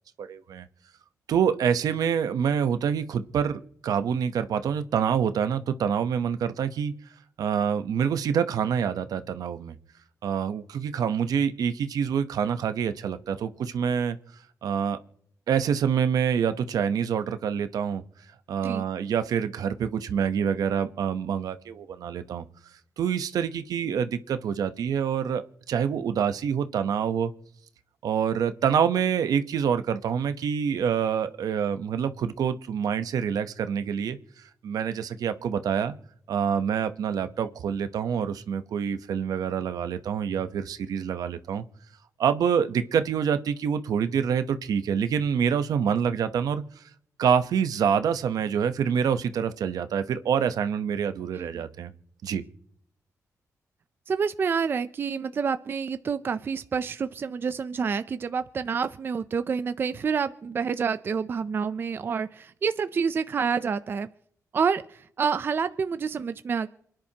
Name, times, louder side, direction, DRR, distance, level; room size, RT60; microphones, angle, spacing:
voice 1, 0.2-0.7 1.3-6.9 7.4-9.7 10.2-14.2 14.6-15.0 15.5-18.0 18.5-22.4 23.0-27.3 28.0-34.2 34.6-35.9 36.3-41.6 42.2-46.8 47.2-51.9 52.2-52.4, right 7 dB, 80° right, 0.9 m, -26 dB
voice 2, 51.3-51.7 54.1-64.1 64.5-66.7, right 6 dB, 35° right, 0.4 m, -28 dB
28.0 x 10.5 x 2.9 m
wide cardioid pair, 170°, 6 cm